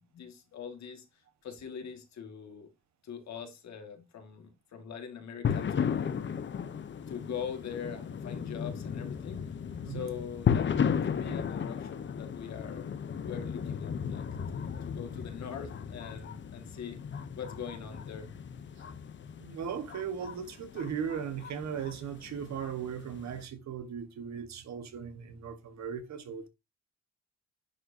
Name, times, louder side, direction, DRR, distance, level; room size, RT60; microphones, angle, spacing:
voice 1, 0.0-2.7 3.0-6.2 7.1-9.4 9.9-12.9 13.2-14.3 14.5-17.0 17.4-18.3, left 7 dB, 65° left, 1.9 m, -42 dB
sound 1, 5.4-23.4, left 7 dB, 40° left, 0.8 m, -35 dB
voice 2, 19.4-26.5, right 7 dB, 65° right, 1.4 m, -37 dB
9.9 x 4.6 x 2.7 m
cardioid pair, 90°, 30 cm